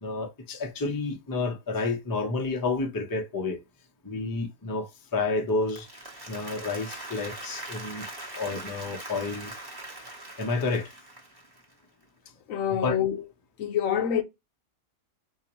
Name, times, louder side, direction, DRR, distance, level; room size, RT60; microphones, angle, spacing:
voice 1, 0.0-3.6 4.0-5.9 6.3-8.1 8.3-9.5 10.4-10.9 12.8-13.0, left 3 dB, 35° left, 0.3 m, -30 dB
Applause, 5.5-11.7, right 1 dB, 20° right, 0.8 m, -41 dB
voice 2, 12.5-13.2 13.6-14.2, left 9 dB, 70° left, 0.9 m, -26 dB
3.9 x 2.8 x 2.9 m
omnidirectional pair, 1.6 m